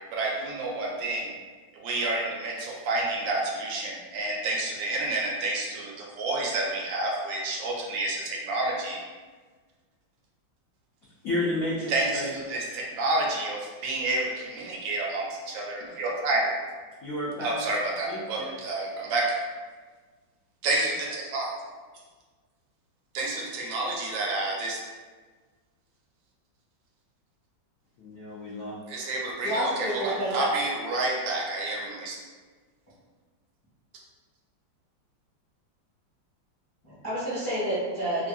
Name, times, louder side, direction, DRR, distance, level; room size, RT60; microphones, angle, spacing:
voice 1, 0.1-1.3 1.7-9.0 11.9-16.5 17.4-19.2 20.6-21.5 23.1-24.8 28.9-32.2, right 2 dB, 80° right, -2 dB, 1.3 m, -29 dB
voice 2, 11.2-12.3 17.0-17.5 18.1-18.5 28.0-28.7, left 1 dB, 75° left, -7 dB, 0.7 m, -31 dB
voice 3, 29.4-30.5 36.8-38.3, right 1 dB, 25° left, -12 dB, 0.7 m, -29 dB
3.2 x 2.3 x 2.5 m, 1.4 s
omnidirectional pair, 2.1 m